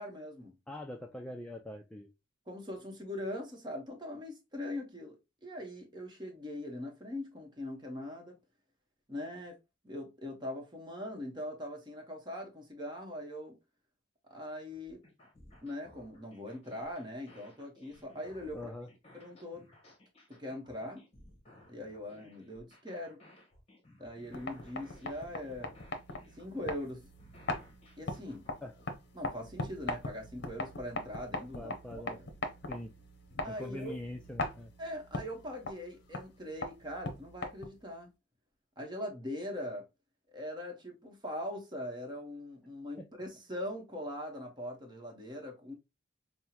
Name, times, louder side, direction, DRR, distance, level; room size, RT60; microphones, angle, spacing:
voice 1, 0.0-0.5 2.5-5.2 5.4-8.4 9.1-9.6 9.8-13.6 14.3-15.0 15.6-18.7 19.1-19.6 20.3-21.1 21.7-23.2 24.0-25.7 26.4-27.1 28.0-28.5 29.1-32.3 33.4-34.0 34.8-38.1 38.8-39.9 40.3-45.7, left 1 dB, 20° right, 1.0 m, -41 dB
voice 2, 0.7-2.1 18.5-18.9 28.6-28.7 31.5-32.2 32.7-32.9 33.5-34.7 43.0-43.1, left 1 dB, 5° left, 0.3 m, -43 dB
sound 1, 14.7-28.9, left 1 dB, 30° left, 1.1 m, -59 dB
sound 2, 24.2-37.9, left 2 dB, 55° left, 0.7 m, -41 dB
5.4 x 2.1 x 2.8 m
head